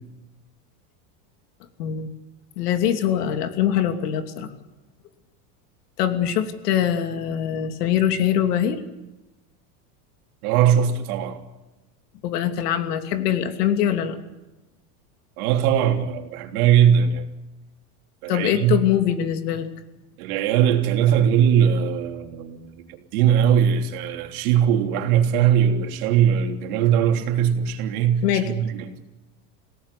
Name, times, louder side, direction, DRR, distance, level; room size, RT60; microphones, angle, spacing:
voice 1, 1.8-2.1 2.6-4.5 6.0-8.8 12.2-14.2 18.3-19.7 28.2-28.5, left 10 dB, 85° left, 2.9 m, -23 dB
voice 2, 10.4-11.4 15.4-17.2 18.2-18.8 20.2-28.9, right 9 dB, 65° right, 3.5 m, -20 dB
27.0 x 17.5 x 10.0 m
supercardioid pair, 170°, 46 cm